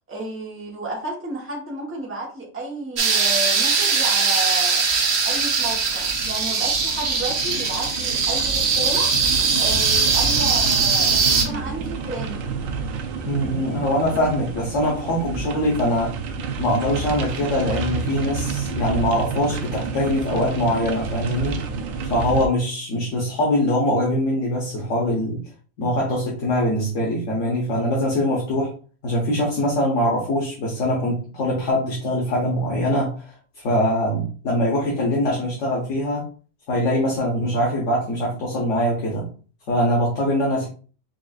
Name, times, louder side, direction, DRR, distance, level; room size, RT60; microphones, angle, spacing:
voice 1, 0.1-4.8 5.2-9.1 9.5-12.5, right 2 dB, 10° right, -3 dB, 0.9 m, -32 dB
sound 1, 3.0-11.4, right 5 dB, 60° right, 0.9 m, -21 dB
sound 2, 4.9-22.5, right 5 dB, 85° right, 1.0 m, -30 dB
voice 2, 13.2-16.1 16.6-21.6 22.1-25.4 25.8-28.7 29.0-33.4 33.6-36.3 36.7-39.3 39.7-40.7, left 1 dB, 70° left, -3 dB, 1.3 m, -23 dB
5.9 x 2.4 x 2.4 m, 0.39 s
omnidirectional pair, 1.4 m